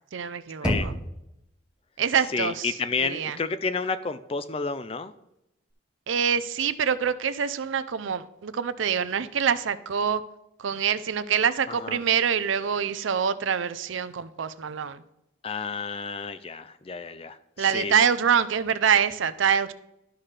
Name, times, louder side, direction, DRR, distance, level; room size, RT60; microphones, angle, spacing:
voice 1, 0.1-0.9 2.0-2.7 3.0-3.4 6.1-10.2 10.6-15.0 17.6-19.7, right 7 dB, 80° right, 14 dB, 0.5 m, -25 dB
Knock, 0.6-1.6, equal, 5° right, 1.0 m, -29 dB
voice 2, 2.3-5.1 11.7-12.0 15.4-17.9, left 4 dB, 30° left, 12 dB, 0.4 m, -31 dB
12.5 x 5.8 x 3.3 m, 0.84 s
head